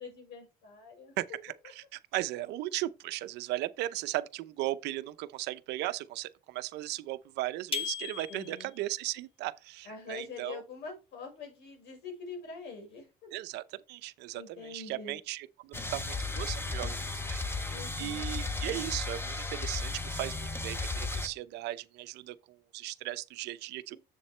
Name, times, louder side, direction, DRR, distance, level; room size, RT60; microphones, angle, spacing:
voice 1, 0.0-1.1 8.3-8.7 9.8-13.1 14.3-15.2 17.7-18.3 23.9-24.0, left 4 dB, 80° left, 5.5 m, -44 dB
voice 2, 1.2-10.6 13.3-17.4 18.0-24.0, right 16 dB, 85° right, 0.7 m, -37 dB
sound 1, 7.7-8.8, left 6 dB, 30° left, 1.8 m, -36 dB
sound 2, 15.7-21.3, left 3 dB, 15° left, 1.3 m, -35 dB
7.5 x 7.2 x 3.3 m
cardioid pair, 110°, 17 cm